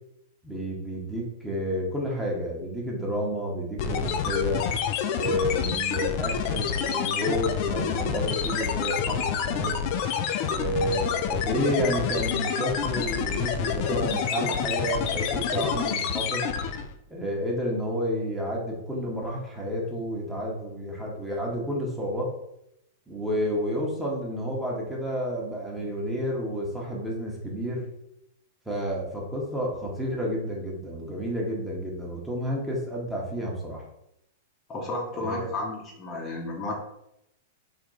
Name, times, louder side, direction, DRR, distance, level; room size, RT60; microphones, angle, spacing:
voice 1, 0.4-4.6 5.1-9.8 10.5-16.5 17.1-22.3 23.1-27.8 28.7-33.8 35.1-35.5, equal, 5° right, -3 dB, 0.9 m, -30 dB
sound 1, 3.8-16.9, left 7 dB, 45° left, 0.3 m, -28 dB
voice 2, 34.7-36.7, left 2 dB, 25° left, -2 dB, 0.8 m, -32 dB
3.4 x 2.3 x 4.0 m, 0.81 s
figure-of-eight pair, 100°, 0 cm